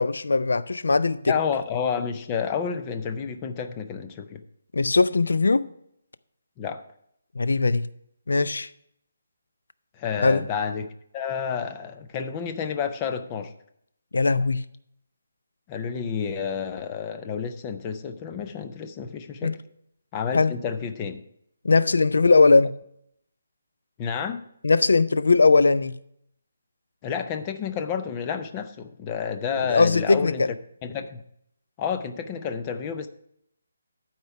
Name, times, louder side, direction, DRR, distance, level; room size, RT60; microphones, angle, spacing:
voice 1, 0.0-1.3 4.7-5.6 7.4-7.8 8.3-8.7 10.2-10.4 14.1-14.6 19.4-19.5 20.3-20.5 21.6-22.7 24.6-26.0 29.7-30.5, left 3 dB, 75° left, 0.5 m, -19 dB
voice 2, 1.3-4.4 6.6-6.8 10.0-13.5 15.7-19.6 20.1-21.2 24.0-24.4 27.0-30.4 30.8-31.2 31.8-33.1, left 7 dB, 15° left, 0.4 m, -30 dB
11.5 x 4.4 x 5.7 m
hypercardioid pair, 180°, 0 cm